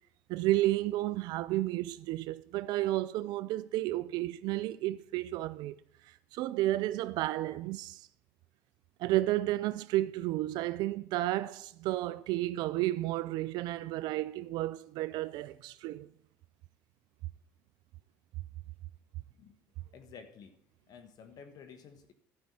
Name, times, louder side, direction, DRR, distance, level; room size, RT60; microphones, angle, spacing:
voice 1, 0.3-5.7 6.3-8.1 9.0-16.1, right 16 dB, 70° right, 0.4 m, -32 dB
voice 2, 19.9-20.5 20.9-22.1, left 6 dB, 60° left, 1.3 m, -51 dB
12.5 x 5.4 x 5.9 m
supercardioid pair, 80°, 8 cm